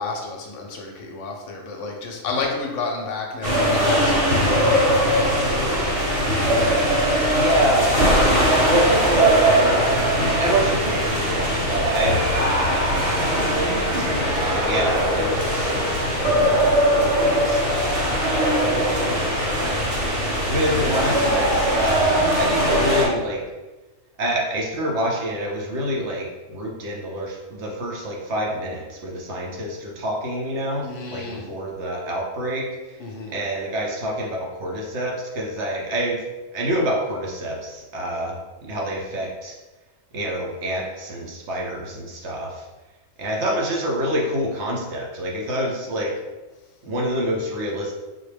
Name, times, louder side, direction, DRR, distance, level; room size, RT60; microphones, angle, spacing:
voice 1, 0.0-5.4 30.8-31.5 33.0-33.4, left 3 dB, 70° left, 1 dB, 0.9 m, -31 dB
sound 1, 3.4-23.0, equal, 35° right, 1.0 m, -20 dB
voice 2, 7.3-9.7 10.4-18.4 18.7-23.4 24.2-33.0 33.3-36.2 36.5-39.5 40.1-42.7 43.2-46.1 46.8-47.9, right 1 dB, 65° right, -1 dB, 0.9 m, -27 dB
4.0 x 2.1 x 3.3 m, 1.2 s
omnidirectional pair, 1.4 m